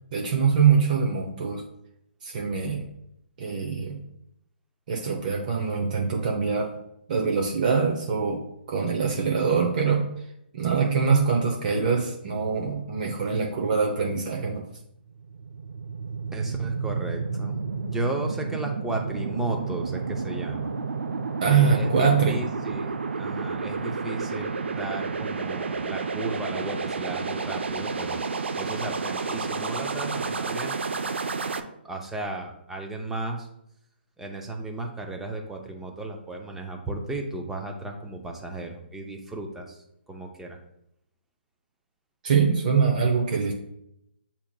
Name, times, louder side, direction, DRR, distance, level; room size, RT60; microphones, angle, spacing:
voice 1, 0.1-1.6 2.2-2.8 3.4-4.0 4.9-6.7 7.1-10.1 10.5-14.7 21.4-22.4 42.2-43.5, right 5 dB, 45° right, 1 dB, 0.7 m, -23 dB
sound 1, 15.0-31.6, right 4 dB, 85° right, 0.5 m, -31 dB
voice 2, 16.3-20.7 21.4-28.2 28.6-30.8 31.8-33.5 34.2-40.6, right 2 dB, 5° right, 2 dB, 0.5 m, -35 dB
8.4 x 2.8 x 2.2 m, 0.78 s
hypercardioid pair, 150°, 6 cm